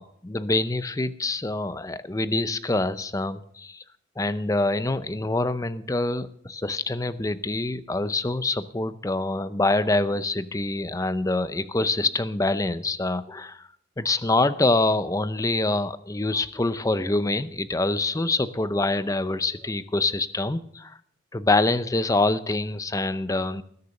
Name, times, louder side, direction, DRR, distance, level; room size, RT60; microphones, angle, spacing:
voice 1, 0.0-3.8 4.2-13.6 14.0-21.0 21.3-23.6, left 2 dB, 15° left, 14 dB, 0.5 m, -25 dB
20.0 x 6.8 x 6.5 m, 0.68 s
head